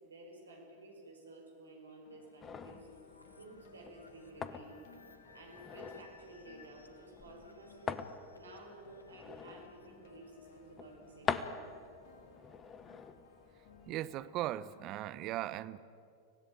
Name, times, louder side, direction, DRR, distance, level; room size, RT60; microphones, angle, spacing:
voice 1, 0.0-2.9 3.3-4.8 5.3-8.0 8.4-11.7, right 2 dB, 70° right, 5.3 m, -53 dB
sound 1, 2.0-14.8, left 4 dB, 50° left, 3.4 m, -61 dB
sound 2, 2.4-14.2, left 6 dB, 20° left, 1.1 m, -45 dB
sound 3, 2.6-11.2, left 3 dB, 80° left, 1.8 m, -62 dB
voice 2, 13.9-15.8, right 14 dB, 35° right, 0.8 m, -38 dB
25.0 x 17.5 x 8.9 m
figure-of-eight pair, 90°, 0 cm